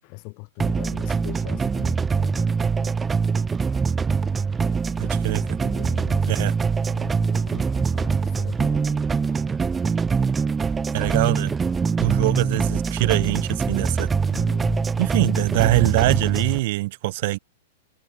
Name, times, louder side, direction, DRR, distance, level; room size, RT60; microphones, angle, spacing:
voice 1, 0.0-3.0 5.2-6.5 6.8-9.0 14.3-15.0, left 35 dB, 45° left, 6.2 m, -40 dB
sound 1, 0.6-16.6, right 5 dB, 15° right, 1.4 m, -23 dB
voice 2, 5.0-5.6 6.3-6.5 10.9-11.5 12.0-14.1 15.0-17.4, right 19 dB, 55° right, 1.4 m, -23 dB
hypercardioid pair, 105°, 0 cm